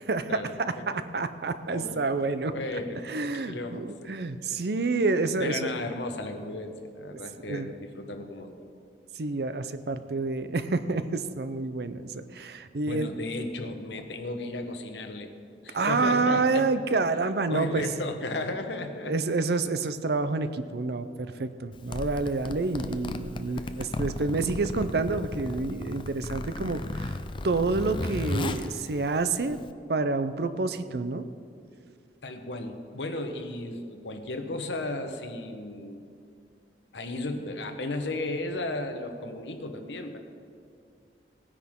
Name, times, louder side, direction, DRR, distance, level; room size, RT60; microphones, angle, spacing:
voice 1, 0.1-2.5 3.1-5.9 7.1-7.7 9.2-13.1 15.7-17.9 19.0-27.2 27.4-29.6 29.9-31.3, right 3 dB, 60° right, 11 dB, 0.6 m, -28 dB
voice 2, 1.7-4.1 5.4-8.7 12.8-15.3 15.6-16.7 17.5-19.2 23.4-24.0 32.2-36.0 36.9-40.2, left 2 dB, 90° left, 6 dB, 1.1 m, -35 dB
Zipper (clothing), 21.7-29.7, left 2 dB, 30° left, 0.5 m, -35 dB
18.0 x 9.9 x 3.7 m, 2.3 s
head